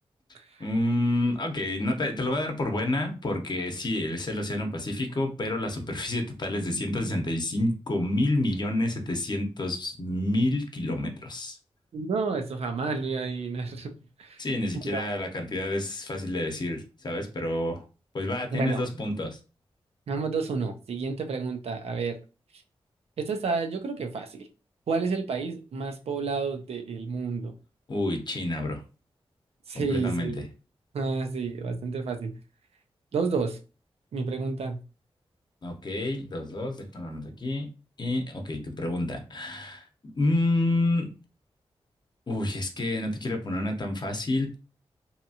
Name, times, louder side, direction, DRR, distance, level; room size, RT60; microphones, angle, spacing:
voice 1, 0.6-11.6 14.4-17.8 18.1-19.4 27.9-28.8 29.7-30.3 35.6-37.7 38.0-41.1 42.3-44.6, left 1 dB, 45° left, 0.7 m, -29 dB
voice 2, 11.9-13.9 14.2-14.4 14.9-15.0 18.5-18.8 20.1-22.2 23.2-24.5 24.9-27.5 29.7-30.5 30.9-32.4 33.1-33.6 34.1-34.8, right 4 dB, 85° right, 0.5 m, -30 dB
2.8 x 2.3 x 2.7 m
cardioid pair, 60°, 10 cm